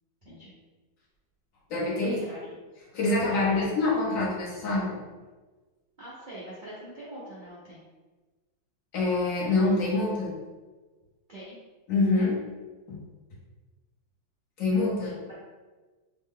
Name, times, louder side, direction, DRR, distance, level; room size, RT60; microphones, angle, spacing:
voice 1, 0.2-0.5 2.0-2.4 3.2-3.7 6.0-7.8 11.3-11.6 15.0-15.3, right 1 dB, 80° right, -9 dB, 0.4 m, -44 dB
voice 2, 1.7-2.2 2.9-5.0 8.9-10.3 11.9-12.4 12.9-13.0 14.6-15.2, left 2 dB, 50° left, -5 dB, 1.1 m, -25 dB
3.6 x 2.2 x 3.6 m, 1.3 s
omnidirectional pair, 2.1 m